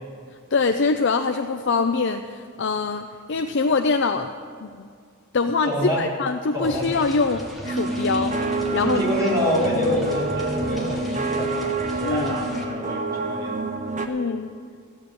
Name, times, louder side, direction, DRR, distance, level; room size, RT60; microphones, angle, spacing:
voice 1, 0.5-4.3 4.6-4.9 5.3-8.3 8.7-9.0 12.0-12.5 14.1-14.5, left 4 dB, 55° left, 6 dB, 0.5 m, -24 dB
voice 2, 5.7-6.0 6.5-6.8 8.8-13.7, left 1 dB, 15° right, -6 dB, 4.0 m, -26 dB
sound 1, 6.6-12.6, equal, ahead, 1.7 m, -38 dB
sound 2, 7.6-14.1, right 3 dB, 35° right, 0.9 m, -27 dB
14.5 x 7.2 x 9.5 m, 2.1 s
head